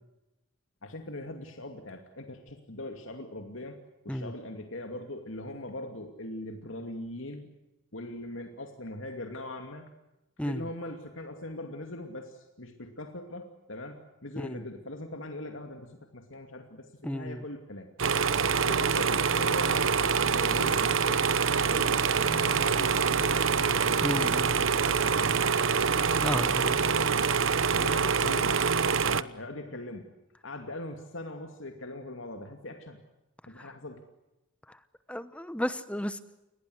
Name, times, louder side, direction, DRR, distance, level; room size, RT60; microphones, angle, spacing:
voice 1, 0.8-3.8 4.0-7.5 7.9-9.9 10.4-17.9 18.6-25.7 26.9-28.6 29.0-30.0 30.4-33.0 33.5-34.0, left 1 dB, 75° left, 5 dB, 2.6 m, -41 dB
voice 2, 17.0-17.4 24.0-24.5 26.2-26.8 29.0-29.1 33.6-33.7 34.7-34.8 35.1-36.2, equal, 5° left, 13 dB, 1.0 m, -33 dB
sound 1, 18.0-29.2, right 6 dB, 75° right, 1.0 m, -25 dB
29.5 x 22.5 x 8.0 m, 0.96 s
head